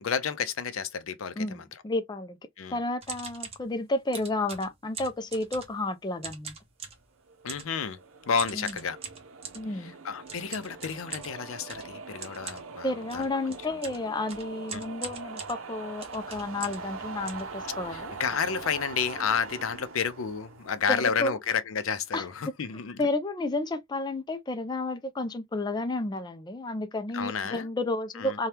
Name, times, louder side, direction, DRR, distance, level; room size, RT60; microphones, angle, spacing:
voice 1, 0.0-1.7 2.6-2.8 7.4-8.0 8.3-9.0 9.7-13.3 14.7-14.8 17.9-23.0 27.1-27.7 28.2-28.4, left 6 dB, 90° left, 0.5 m, -31 dB
voice 2, 1.4-2.4 2.7-6.5 8.5-8.7 9.5-9.9 12.8-18.1 20.9-21.4 22.1-22.3 23.0-28.5, left 2 dB, 20° left, 0.4 m, -31 dB
sound 1, 3.0-3.7 4.1-5.9 6.2-7.1 7.5-7.8 8.4-9.7 10.3-16.9 17.3-18.1 18.6-18.7 18.9-19.2 19.4-19.6 20.2-20.3 20.6-20.8, right 5 dB, 30° right, 0.9 m, -42 dB
sound 2, 7.3-21.6, right 4 dB, 90° right, 0.6 m, -43 dB
2.8 x 2.3 x 3.3 m
head